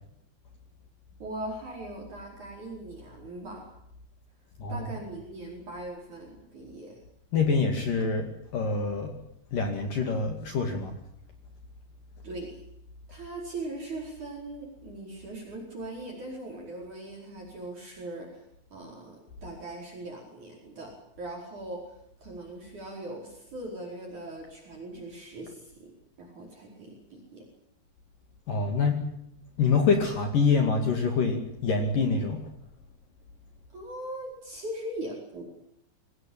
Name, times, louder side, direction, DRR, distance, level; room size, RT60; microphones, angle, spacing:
voice 1, 1.2-3.7 4.7-7.0 12.2-12.6 13.1-18.4 18.7-21.9 22.2-25.7 26.2-27.5 33.7-35.4, right 1 dB, 40° right, 0 dB, 5.9 m, -40 dB
voice 2, 7.3-8.3 8.5-9.1 9.5-10.9 28.5-29.0 29.6-32.5, left 4 dB, 50° left, 4 dB, 3.5 m, -25 dB
24.0 x 18.0 x 8.8 m, 0.75 s
omnidirectional pair, 5.5 m